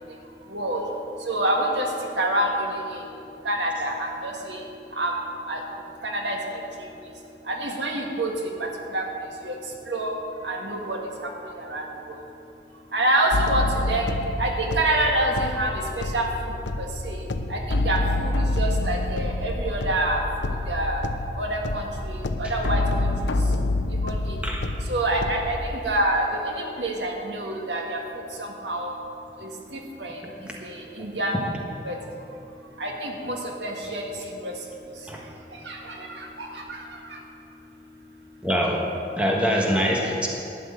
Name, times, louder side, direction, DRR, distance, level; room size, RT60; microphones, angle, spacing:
voice 1, 1.3-1.9 2.2-2.8 3.5-4.6 5.0-5.1 5.5-5.6 6.0-6.4 7.5-8.3 8.9-9.0 9.4-9.5 9.9-10.1 10.4-11.0 11.7-11.8 12.9-14.1 14.4-15.7 16.1-16.3 17.1-17.2 17.5-17.6 17.8-18.3 18.6-20.2 20.7-21.0 21.4-22.8 24.0-24.4 24.9-28.0 28.6-28.9 30.0-30.2 31.0-31.4 31.9-32.0 32.8-33.4 33.6-34.0 34.4-34.5 35.7-35.8 36.7-36.8, right 1 dB, 80° right, 0 dB, 1.8 m, -26 dB
sound 1, 13.3-25.8, left 2 dB, 85° left, 0.7 m, -27 dB
voice 2, 38.4-38.8 39.2-40.3, equal, 5° right, -2 dB, 1.4 m, -23 dB
12.0 x 6.4 x 9.2 m, 2.7 s
head